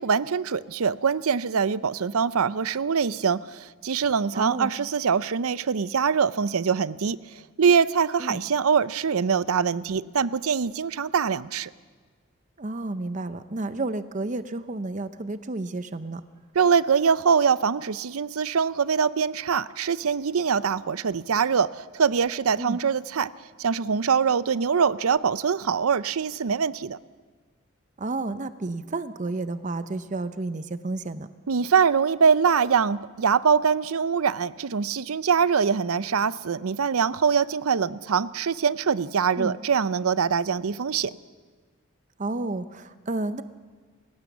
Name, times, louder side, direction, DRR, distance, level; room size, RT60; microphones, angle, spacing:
voice 1, 0.0-7.2 7.6-11.7 16.5-23.3 23.6-27.0 31.5-41.2, right 6 dB, 75° right, 17 dB, 0.6 m, -23 dB
voice 2, 4.3-4.7 8.2-8.4 12.6-16.2 22.6-22.8 28.0-31.3 39.4-39.6 42.2-43.4, right 2 dB, 35° right, 12 dB, 0.6 m, -31 dB
28.5 x 16.0 x 7.2 m, 1.5 s
head